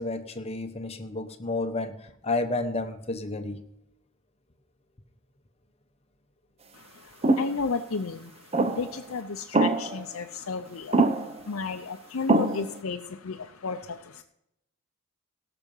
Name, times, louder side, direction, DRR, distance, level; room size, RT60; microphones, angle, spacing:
voice 1, 0.0-2.0 2.2-3.6, left 2 dB, 30° left, 7 dB, 1.0 m, -31 dB
sound 1, 7.2-7.5 8.5-9.0 9.5-10.1 10.9-11.4 12.3-12.8, right 2 dB, 30° right, 0.7 m, -23 dB
voice 2, 7.4-8.3 8.8-11.0 11.5-13.0 13.2-13.4 13.6-13.8, left 4 dB, 75° left, 3 dB, 0.6 m, -32 dB
17.0 x 6.9 x 5.5 m, 0.80 s
head